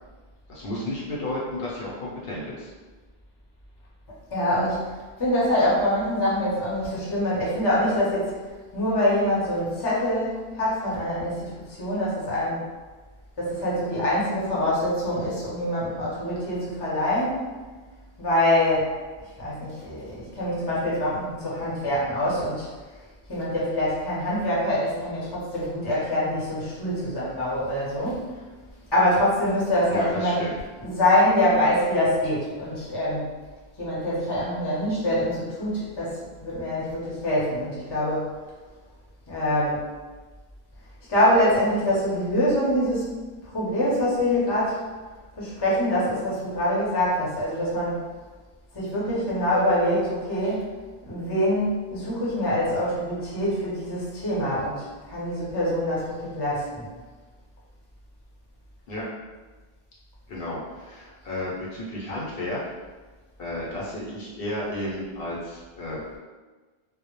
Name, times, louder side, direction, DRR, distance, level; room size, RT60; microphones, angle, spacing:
voice 1, 0.5-2.7 29.9-30.6 58.9-59.1 60.3-62.6 63.4-66.0, left 1 dB, 70° left, -5 dB, 0.8 m, -32 dB
voice 2, 4.3-4.9 5.2-8.4 8.7-12.7 13.4-17.5 18.2-18.9 19.4-22.7 23.3-28.4 28.9-30.5 30.8-33.3 33.8-38.3 39.3-39.8 41.1-43.1 43.5-44.8 45.4-48.0 48.7-50.7 51.1-56.9, left 1 dB, 30° left, -7 dB, 0.6 m, -25 dB
2.1 x 2.0 x 2.9 m, 1.3 s
omnidirectional pair, 1.0 m